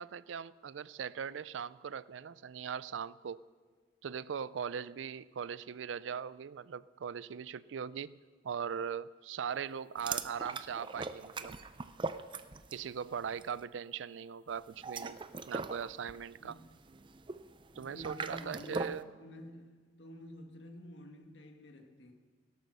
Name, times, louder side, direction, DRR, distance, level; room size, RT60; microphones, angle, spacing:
voice 1, 0.0-3.4 4.0-11.6 12.7-15.2 15.5-16.6 17.8-19.0, right 7 dB, 90° right, 0.4 m, -40 dB
sound 1, 10.0-12.9 13.2-13.5 14.7-19.0, right 4 dB, 25° right, 0.5 m, -41 dB
voice 2, 16.3-16.7 17.7-22.1, equal, 75° left, 1.7 m, -49 dB
16.5 x 12.0 x 6.2 m
head